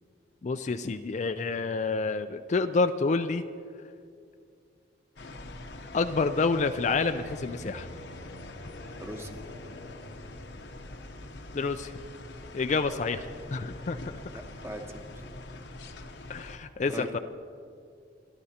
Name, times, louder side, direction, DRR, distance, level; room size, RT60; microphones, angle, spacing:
voice 1, 0.4-3.4 5.9-7.9 11.5-11.9 12.5-14.0 16.3-17.2, left 4 dB, 40° left, 8 dB, 0.4 m, -28 dB
sound 1, 5.2-16.6, left 2 dB, 70° left, 0.9 m, -43 dB
voice 2, 9.0-9.4 14.2-15.3 16.9-17.1, right 1 dB, 15° right, 3 dB, 1.0 m, -41 dB
29.0 x 12.0 x 2.9 m, 2.3 s
head